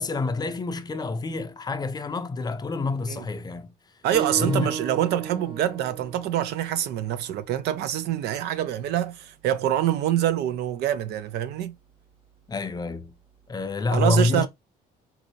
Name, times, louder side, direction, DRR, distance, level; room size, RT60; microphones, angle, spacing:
voice 1, 0.0-3.7 4.3-4.8 12.5-13.2 13.5-14.5, left 3 dB, 25° left, 0.5 m, -27 dB
voice 2, 4.0-11.7 13.9-14.5, right 11 dB, 75° right, 0.5 m, -25 dB
sound 1, 4.1-9.3, right 6 dB, 30° right, 0.7 m, -37 dB
3.9 x 2.7 x 2.7 m
cardioid pair, 110°, 17 cm